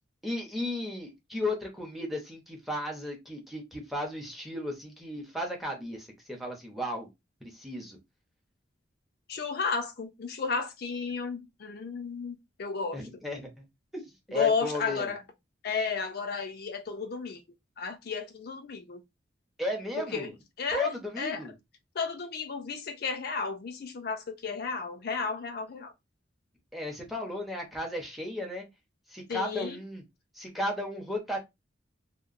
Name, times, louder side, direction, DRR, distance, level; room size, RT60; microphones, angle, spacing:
voice 1, 0.2-7.1 7.4-8.0 12.9-13.7 13.9-14.0 14.3-15.1 19.6-20.3 20.7-21.5 26.7-28.7 29.1-30.0 30.3-31.4, left 1 dB, ahead, 0.6 m, -34 dB
voice 2, 9.3-13.0 14.3-15.2 15.6-17.4 17.8-19.0 20.1-20.3 20.6-21.4 22.0-25.9 29.3-29.8, left 5 dB, 55° left, 0.4 m, -33 dB
2.8 x 2.1 x 2.4 m
head